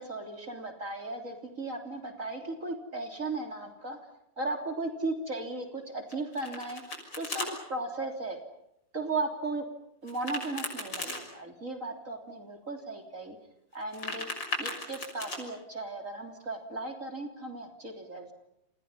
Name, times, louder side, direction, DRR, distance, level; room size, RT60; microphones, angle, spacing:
voice 1, 0.0-4.0 4.4-6.8 7.1-8.4 8.9-9.7 10.0-13.4 13.7-14.3 14.6-18.3, right 2 dB, 45° right, 4 dB, 3.8 m, -36 dB
Domestic sounds home sounds, 6.1-7.5 10.1-11.2 13.7-15.4, left 2 dB, 80° left, 6.9 m, -37 dB
29.5 x 28.5 x 5.6 m, 0.80 s
omnidirectional pair, 2.0 m